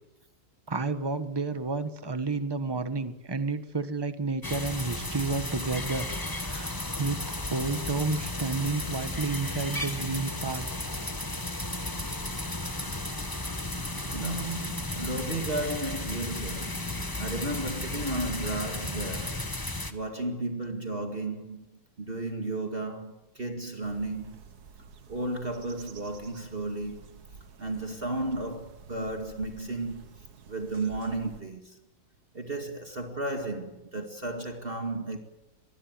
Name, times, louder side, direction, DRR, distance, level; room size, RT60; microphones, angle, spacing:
voice 1, 0.7-6.1 6.4-7.2 7.5-10.6 12.0-12.1, right 3 dB, 15° right, 1.3 m, -31 dB
sound 1, 4.4-19.9, left 1 dB, 15° left, 1.3 m, -34 dB
sound 2, 13.7-19.5, left 7 dB, 75° left, 2.0 m, -46 dB
voice 2, 14.1-16.9 17.2-19.5 19.9-21.6 22.0-24.4 25.1-27.0 27.6-30.1 30.5-31.8 32.3-35.2, right 2 dB, 35° right, 2.4 m, -34 dB
sound 3, 23.8-31.4, right 5 dB, 65° right, 1.9 m, -50 dB
25.0 x 20.5 x 7.7 m
omnidirectional pair, 1.8 m